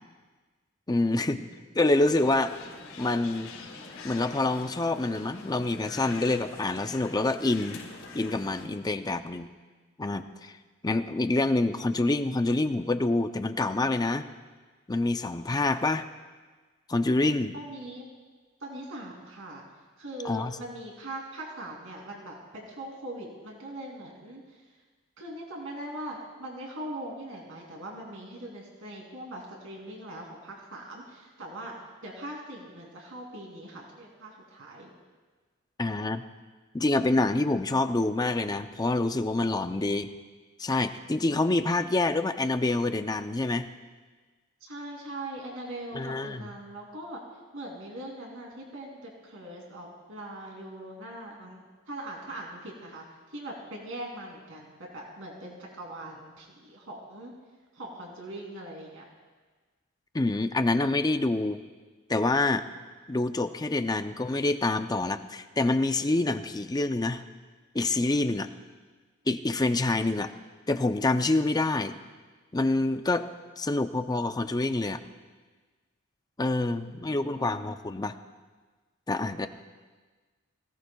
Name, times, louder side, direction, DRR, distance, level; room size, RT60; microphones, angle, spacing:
voice 1, 0.9-1.4 1.7-2.5 3.0-3.5 4.0-9.5 10.0-10.5 10.8-14.2 14.9-16.1 16.9-17.5 20.2-20.6 35.8-36.2 36.7-40.1 40.6-43.7 45.9-46.5 60.1-61.6 62.1-62.7 63.1-67.2 67.7-68.5 69.3-70.3 70.7-72.0 72.5-73.3 73.6-75.0 76.4-78.1 79.1-79.5, left 2 dB, 20° left, 9 dB, 0.5 m, -26 dB
sound 1, 2.0-8.7, left 3 dB, 80° left, 4.4 m, -45 dB
voice 2, 17.5-18.0 18.6-19.6 20.0-24.6 25.2-31.7 32.0-34.9 44.6-47.2 47.5-57.3 57.7-59.0 76.7-77.6, right 1 dB, 65° right, -1 dB, 2.9 m, -41 dB
24.0 x 17.0 x 2.3 m, 1.4 s
head